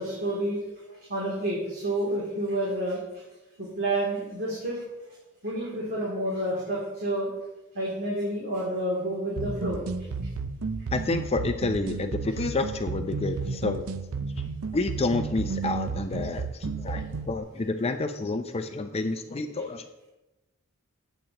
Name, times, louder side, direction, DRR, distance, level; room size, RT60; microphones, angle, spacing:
voice 1, 0.0-3.2 3.6-4.8 5.4-7.3 7.7-9.8, right 1 dB, 50° right, -5 dB, 2.9 m, -29 dB
sound 1, 9.4-17.4, right 4 dB, 85° right, 0.6 m, -32 dB
voice 2, 10.9-13.9 14.7-19.8, left 3 dB, 30° left, 6 dB, 0.5 m, -29 dB
15.0 x 9.0 x 2.9 m, 1.0 s
head